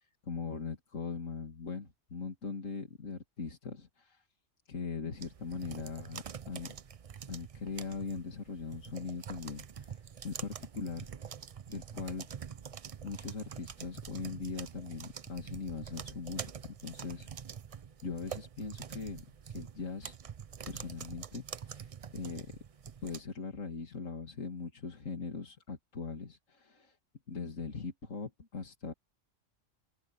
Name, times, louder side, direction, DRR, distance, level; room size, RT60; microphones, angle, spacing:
voice 1, 0.0-4.2 4.7-6.7 7.3-11.3 11.7-12.3 13.0-17.3 18.0-20.2 20.7-22.5 23.0-27.0 27.3-28.9, left 5 dB, 80° left, 2.9 m, -41 dB
sound 1, 5.2-23.2, right 7 dB, 50° right, 0.4 m, -46 dB
omnidirectional pair, 1.3 m